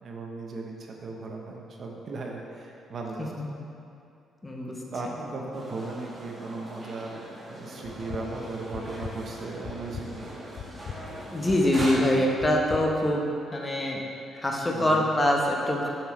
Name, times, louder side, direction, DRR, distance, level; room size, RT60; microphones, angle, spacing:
voice 1, 0.0-3.3 4.9-10.4 14.7-15.1, right 3 dB, 50° right, 0 dB, 0.9 m, -37 dB
voice 2, 4.4-4.8 11.3-14.0 14.3-15.9, left 1 dB, 20° left, -1 dB, 0.9 m, -24 dB
sound 1, 5.5-11.9, right 1 dB, 20° right, 1.5 m, -41 dB
sound 2, 7.8-13.2, left 6 dB, 60° left, 0.3 m, -42 dB
7.0 x 5.7 x 3.2 m, 2.6 s
cardioid pair, 90°, 0 cm